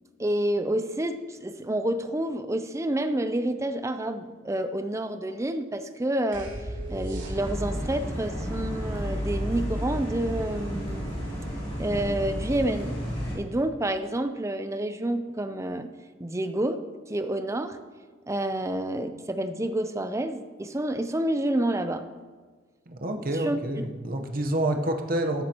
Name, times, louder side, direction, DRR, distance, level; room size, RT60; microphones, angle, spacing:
voice 1, 0.2-6.5 6.9-11.1 11.8-13.0 13.4-15.9 16.2-17.8 18.3-22.1 23.3-23.6, right 1 dB, 15° right, 10 dB, 0.5 m, -29 dB
sound 1, 6.3-7.9, equal, 60° right, 3.3 m, -35 dB
sound 2, 7.3-13.3, equal, 25° left, 3.7 m, -32 dB
voice 2, 22.9-25.4, right 1 dB, 45° right, 4 dB, 0.9 m, -28 dB
14.0 x 9.7 x 2.9 m, 1.4 s
head